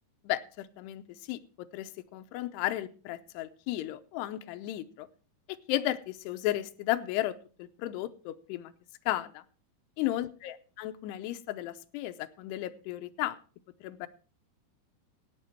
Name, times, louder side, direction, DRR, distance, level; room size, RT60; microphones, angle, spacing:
voice 1, 0.2-5.1 5.5-8.7 9.1-9.4 10.0-13.4 13.8-14.1, left 14 dB, 90° left, 10 dB, 2.8 m, -34 dB
14.5 x 9.4 x 4.5 m, 0.39 s
omnidirectional pair, 4.6 m